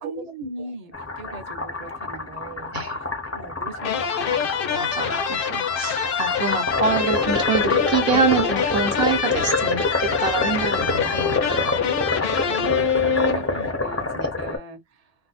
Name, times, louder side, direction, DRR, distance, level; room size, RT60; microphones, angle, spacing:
voice 1, 0.0-4.6 11.6-15.1, right 2 dB, 45° right, 0.6 m, -39 dB
sound 1, 0.9-14.6, left 2 dB, 20° left, 0.4 m, -27 dB
sound 2, 3.8-13.8, left 7 dB, 60° left, 0.7 m, -25 dB
voice 2, 4.7-11.8 14.2-14.3, right 5 dB, 65° right, 0.9 m, -26 dB
2.6 x 2.1 x 4.0 m
omnidirectional pair, 1.1 m